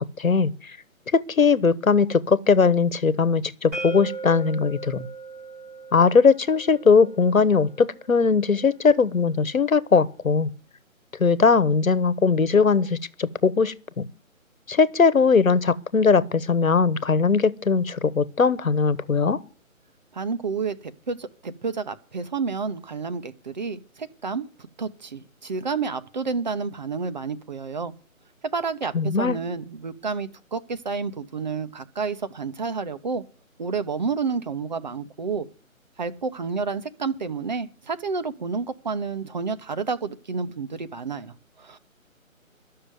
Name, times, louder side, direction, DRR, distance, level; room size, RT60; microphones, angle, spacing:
voice 1, 0.2-0.5 1.1-5.1 5.9-10.5 11.2-14.1 14.7-19.4 28.9-29.4, left 5 dB, 70° left, 1.3 m, -20 dB
sound 1, 3.7-9.5, right 3 dB, 10° right, 1.2 m, -39 dB
voice 2, 20.1-27.9 28.4-33.2 33.6-35.5 36.0-41.8, right 5 dB, 30° right, 0.9 m, -30 dB
12.5 x 6.6 x 9.2 m
figure-of-eight pair, 155°, 42 cm